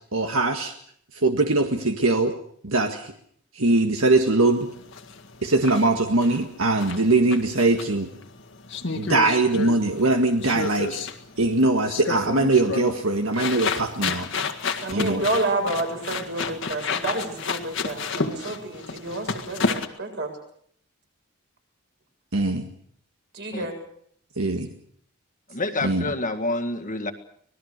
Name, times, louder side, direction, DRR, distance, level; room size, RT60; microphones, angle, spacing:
voice 1, 0.1-0.7 1.2-2.3 2.6-3.1 3.6-4.7 5.4-8.1 8.9-11.0 11.4-14.3 14.9-15.2 22.3-22.7 24.4-24.7 25.8-26.0, right 2 dB, 70° right, 5 dB, 1.7 m, -21 dB
sound 1, 4.5-19.9, left 4 dB, 55° left, 1.9 m, -31 dB
voice 2, 14.8-20.3 23.3-23.7, right 2 dB, 50° right, 3 dB, 7.4 m, -29 dB
voice 3, 25.5-27.1, left 2 dB, 35° left, 7 dB, 1.8 m, -28 dB
25.5 x 19.5 x 6.7 m, 0.65 s
head